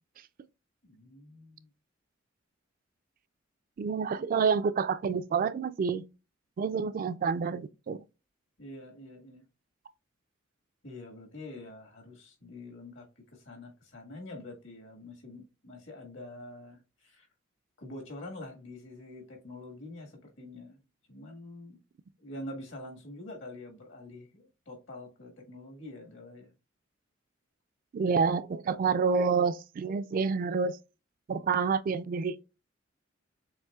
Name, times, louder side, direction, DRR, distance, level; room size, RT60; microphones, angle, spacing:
voice 1, 0.8-1.7 8.6-9.4 10.8-17.3 17.8-20.8 21.1-21.8 22.2-26.5, left 1 dB, 70° left, 1.6 m, -46 dB
voice 2, 3.8-6.0 6.6-8.0 27.9-30.8 31.3-32.4, right 5 dB, 45° right, 0.3 m, -28 dB
7.2 x 3.0 x 2.3 m
head